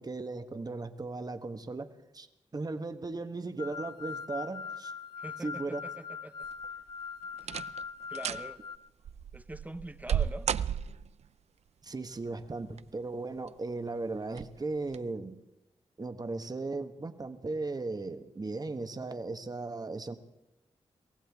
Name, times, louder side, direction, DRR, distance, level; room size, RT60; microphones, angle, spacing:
voice 1, 0.0-2.3 2.5-4.9 5.4-5.8 11.8-15.4 16.0-20.2, right 3 dB, 35° right, 9 dB, 1.3 m, -37 dB
sound 1, 3.6-8.8, left 6 dB, 45° left, 0.7 m, -41 dB
voice 2, 5.2-6.5 7.4-7.5 8.1-8.6 9.3-10.5, right 1 dB, 15° right, 13 dB, 0.8 m, -44 dB
sound 2, 6.4-6.9 7.4-7.8 8.1-8.5 9.0-11.2 12.4-13.0 13.5-13.6 14.3-14.5 14.9-15.0, right 8 dB, 75° right, 0.5 m, -33 dB
23.5 x 16.5 x 3.6 m, 0.91 s
cardioid pair, 60°, 11 cm